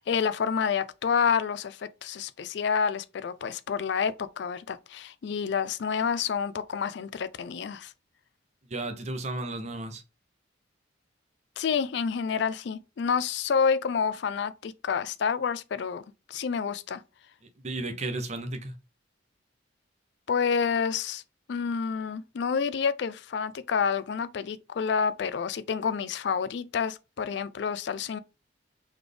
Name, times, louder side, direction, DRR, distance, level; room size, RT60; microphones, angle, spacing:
voice 1, 0.0-7.9 11.6-16.0 16.3-17.0 20.3-21.2 21.5-28.2, left 6 dB, 60° left, 0.4 m, -28 dB
voice 2, 8.7-10.0 17.6-18.7, right 2 dB, 35° right, 0.7 m, -33 dB
4.0 x 3.3 x 3.3 m
head